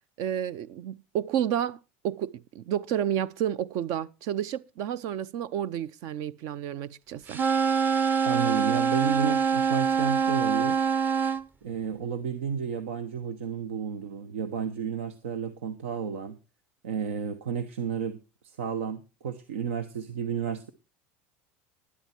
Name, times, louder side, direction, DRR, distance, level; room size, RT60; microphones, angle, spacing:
voice 1, 0.2-7.4, right 10 dB, 60° right, 0.7 m, -31 dB
sound 1, 7.3-11.4, right 6 dB, 25° right, 0.9 m, -24 dB
voice 2, 8.2-10.8 11.6-16.4 16.8-18.2 18.4-20.7, right 7 dB, 85° right, 1.1 m, -32 dB
11.5 x 11.5 x 4.4 m
hypercardioid pair, 95°, 7 cm